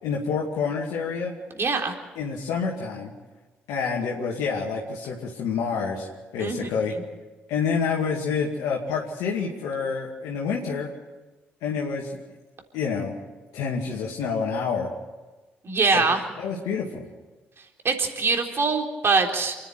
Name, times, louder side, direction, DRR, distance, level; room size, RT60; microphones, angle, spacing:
voice 1, 0.0-1.3 2.2-3.1 3.7-6.1 6.3-6.9 7.5-10.9 11.6-12.2 12.7-13.1 13.5-14.9 15.9-16.0 16.4-17.1, left 5 dB, 70° left, -2 dB, 2.3 m, -28 dB
voice 2, 1.6-1.9 6.4-6.7 15.6-16.2 17.8-19.5, right 4 dB, 45° right, 3 dB, 3.7 m, -23 dB
28.0 x 10.5 x 9.3 m, 1.2 s
hypercardioid pair, 45°, 6 cm